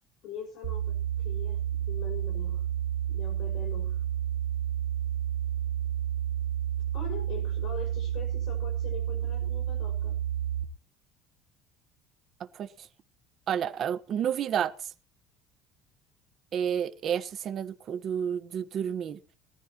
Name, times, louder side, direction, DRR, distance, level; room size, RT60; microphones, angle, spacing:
voice 1, 0.2-1.6 1.9-2.7 3.1-4.0 6.9-10.2, left 6 dB, 65° left, 5.6 m, -43 dB
sound 1, 0.6-10.6, right 10 dB, 85° right, 1.3 m, -30 dB
voice 2, 13.5-14.7 16.5-19.2, right 8 dB, 35° right, 1.3 m, -30 dB
21.5 x 14.0 x 3.0 m
cardioid pair, 160°, 0 cm